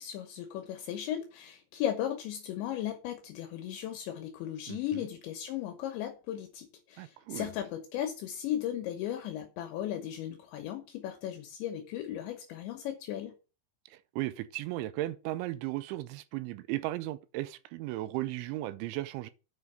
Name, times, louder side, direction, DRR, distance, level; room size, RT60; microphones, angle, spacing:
voice 1, 0.0-13.3, left 11 dB, 75° left, 3.2 m, -36 dB
voice 2, 4.7-5.0 7.0-7.5 13.9-19.3, right 16 dB, 80° right, 2.9 m, -36 dB
9.3 x 5.8 x 6.6 m
omnidirectional pair, 5.6 m